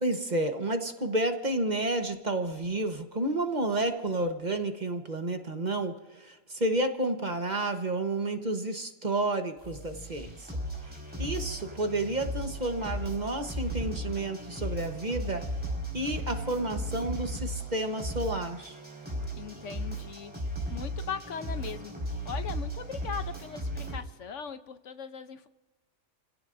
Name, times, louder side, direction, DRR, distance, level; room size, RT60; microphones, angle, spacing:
voice 1, 0.0-10.5 10.8-10.9 11.2-15.5 15.9-18.8, right 2 dB, 35° right, 5 dB, 1.3 m, -31 dB
sound 1, 9.6-24.0, equal, 5° right, 5.0 m, -36 dB
voice 2, 19.4-20.3 20.7-21.9 22.2-25.5, left 6 dB, 65° left, 10 dB, 1.1 m, -39 dB
29.0 x 17.0 x 2.7 m, 1.2 s
omnidirectional pair, 1.4 m